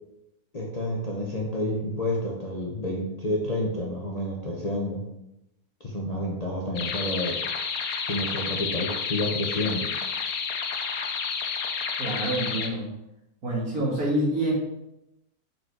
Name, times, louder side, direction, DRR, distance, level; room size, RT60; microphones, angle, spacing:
voice 1, 0.5-5.0 5.8-7.4 8.1-9.9, left 1 dB, 30° left, -2 dB, 0.9 m, -29 dB
sound 1, 6.8-12.7, left 6 dB, 90° left, 1.4 m, -30 dB
voice 2, 12.0-12.9 13.4-14.5, right 1 dB, 65° right, -3 dB, 2.4 m, -27 dB
6.1 x 5.2 x 4.7 m, 0.89 s
omnidirectional pair, 1.6 m